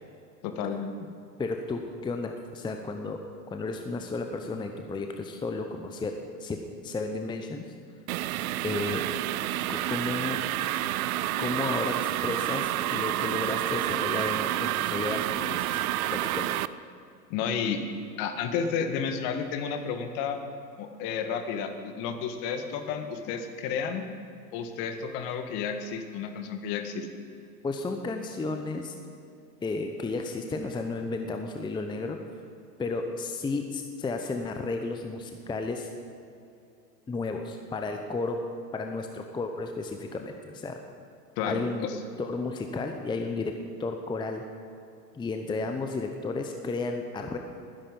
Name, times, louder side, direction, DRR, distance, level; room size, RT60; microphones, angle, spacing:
voice 1, 0.4-0.9 17.3-17.8 18.2-20.4 20.8-24.1 24.5-27.1 41.4-42.0, left 6 dB, 45° left, 7 dB, 1.8 m, -31 dB
voice 2, 1.4-3.2 3.5-6.1 6.4-7.6 8.6-9.0 9.7-10.4 11.4-15.8 16.1-16.5 27.6-28.9 29.6-32.2 32.8-35.9 37.1-38.4 38.7-40.8 41.4-41.9 42.2-43.5 43.8-44.4 45.1-47.4, left 3 dB, 10° left, 5 dB, 0.8 m, -33 dB
sound 1, 8.1-16.7, right 14 dB, 60° right, 0.6 m, -29 dB
20.0 x 10.5 x 5.4 m, 2.6 s
hypercardioid pair, 100°, 49 cm